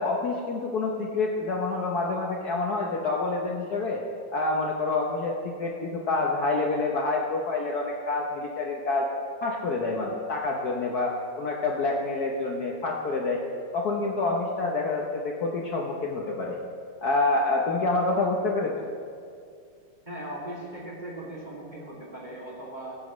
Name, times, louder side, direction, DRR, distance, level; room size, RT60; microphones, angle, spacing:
voice 1, 0.0-4.0 4.3-9.1 9.4-13.4 13.7-16.6 17.0-18.9, left 3 dB, 55° left, -1 dB, 1.3 m, -27 dB
voice 2, 20.1-23.0, right 1 dB, 20° right, -4 dB, 2.5 m, -38 dB
20.0 x 9.8 x 3.2 m, 2.3 s
omnidirectional pair, 2.3 m